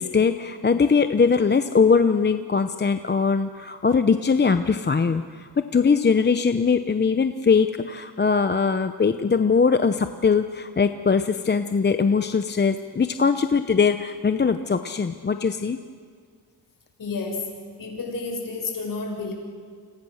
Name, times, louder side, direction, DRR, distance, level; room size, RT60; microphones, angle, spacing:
voice 1, 0.0-15.8, left 5 dB, 25° left, 9 dB, 0.8 m, -21 dB
voice 2, 17.0-17.5 17.8-19.3, left 3 dB, 50° left, 1 dB, 6.5 m, -30 dB
28.5 x 26.5 x 6.5 m, 2.1 s
cardioid pair, 110°, 43 cm